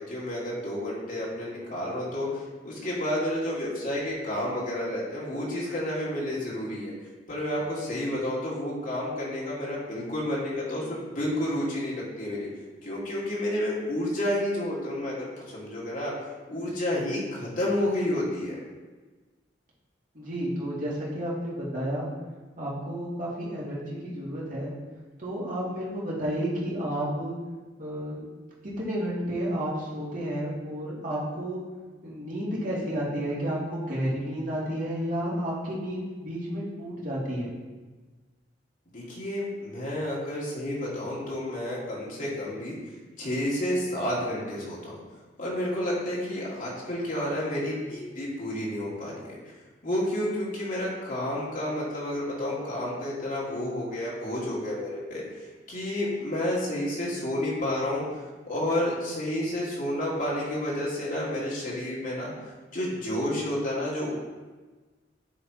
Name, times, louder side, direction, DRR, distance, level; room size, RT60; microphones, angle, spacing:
voice 1, 0.0-6.9 7.3-12.5 12.8-16.1 16.5-18.6 38.9-42.8 43.2-44.9 45.4-49.6 49.8-55.2 55.7-58.0 58.5-62.3 62.7-64.1, left 1 dB, 50° left, -6 dB, 2.1 m, -30 dB
voice 2, 20.1-22.1 22.6-24.7 25.2-27.4 27.8-28.2 28.8-31.6 32.0-37.5, equal, 50° right, -6 dB, 2.2 m, -31 dB
9.8 x 3.3 x 4.3 m, 1.3 s
head